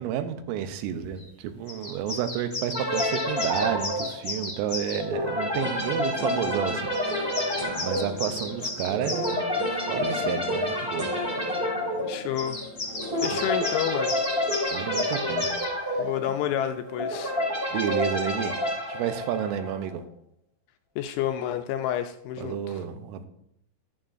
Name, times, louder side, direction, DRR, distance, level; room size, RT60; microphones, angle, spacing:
voice 1, 0.0-6.9 7.2-7.5 7.8-9.4 9.9-11.1 13.3-13.4 14.7-15.5 15.8-16.1 17.7-18.5 18.9-20.0 22.4-23.3, right 9 dB, 85° right, 9 dB, 3.4 m, -31 dB
sound 1, 1.2-1.3 1.7-5.0 6.9-9.4 12.4-15.7, left 2 dB, 30° left, 2.0 m, -34 dB
sound 2, 2.7-19.9, left 1 dB, 20° right, 1.7 m, -29 dB
sound 3, 5.5-13.9, right 1 dB, 50° right, 1.3 m, -41 dB
voice 2, 12.1-12.6 13.2-14.3 16.0-17.4 21.0-22.8, left 10 dB, 85° left, 6 dB, 2.8 m, -29 dB
11.5 x 11.0 x 2.6 m, 0.74 s
omnidirectional pair, 5.7 m